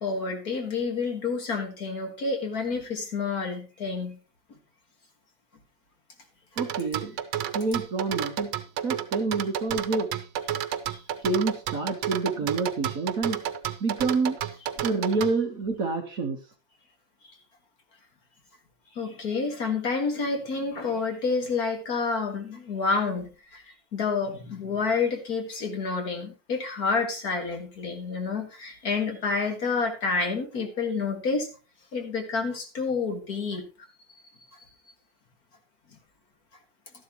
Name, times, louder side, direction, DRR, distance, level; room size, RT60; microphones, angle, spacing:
voice 1, 0.0-4.2 10.9-11.0 18.9-23.6 23.9-31.5 31.9-33.6 34.5-34.6, left 4 dB, 50° left, 4 dB, 2.2 m, -29 dB
voice 2, 6.6-7.1 7.5-8.5 8.8-10.1 11.2-13.4 13.8-14.4 14.8-16.4, right 3 dB, 45° right, 4 dB, 1.6 m, -27 dB
sound 1, 6.6-15.3, right 11 dB, 90° right, 1.6 m, -31 dB
12.5 x 11.0 x 3.0 m, 0.32 s
omnidirectional pair, 2.2 m